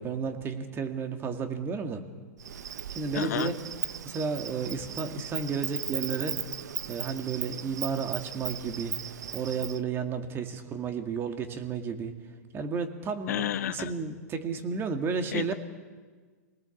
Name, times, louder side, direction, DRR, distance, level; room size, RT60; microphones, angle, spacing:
voice 1, 0.0-2.0 2.9-3.5 4.0-6.4 6.9-9.0 9.3-12.1 12.5-15.5, right 5 dB, 25° right, 6 dB, 2.3 m, -32 dB
Insect, 2.4-9.8, right 9 dB, 80° right, 0.9 m, -37 dB
voice 2, 3.1-3.5 13.3-13.9 15.3-15.5, left 11 dB, 70° left, 11 dB, 1.3 m, -31 dB
27.0 x 19.0 x 7.3 m, 1.5 s
hypercardioid pair, 125°, 9 cm